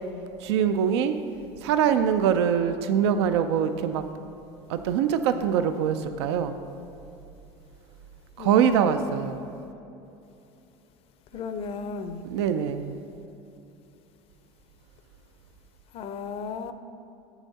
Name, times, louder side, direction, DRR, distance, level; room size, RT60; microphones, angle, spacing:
voice 1, 0.4-1.2 1.6-4.0 4.7-6.6 8.4-9.4 12.2-12.9, right 8 dB, 85° right, 9 dB, 0.4 m, -23 dB
voice 2, 8.4-9.3 11.3-12.2 15.9-16.7, left 4 dB, 45° left, 10 dB, 0.5 m, -35 dB
8.4 x 7.0 x 4.1 m, 2.8 s
supercardioid pair, 115°, 14 cm